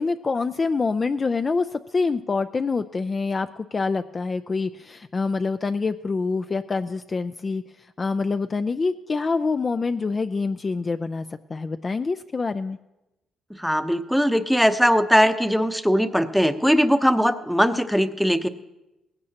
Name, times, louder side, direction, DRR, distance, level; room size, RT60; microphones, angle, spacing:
voice 1, 0.0-7.6 8.0-11.2 11.5-12.8, left 4 dB, 35° left, 9 dB, 0.4 m, -26 dB
voice 2, 13.5-18.5, equal, ahead, 9 dB, 0.7 m, -20 dB
18.5 x 16.5 x 2.9 m, 0.99 s
cardioid pair, 90°, 0 cm